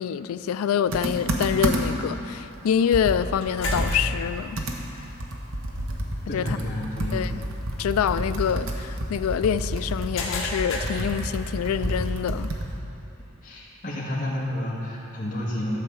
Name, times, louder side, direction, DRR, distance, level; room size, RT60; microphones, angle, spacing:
voice 1, 0.0-4.6 6.3-6.6 7.1-7.4 7.8-12.5, left 8 dB, 85° left, 14 dB, 0.3 m, -26 dB
Computer keyboard, 0.9-2.1 2.5-2.6 2.9-12.8, right 1 dB, 70° right, 1.0 m, -29 dB
sound 1, 2.8-12.1, left 2 dB, 65° left, 1.5 m, -39 dB
voice 2, 6.3-7.2 13.4-15.8, left 1 dB, 40° left, -7 dB, 1.9 m, -30 dB
12.5 x 4.7 x 7.0 m, 2.9 s
head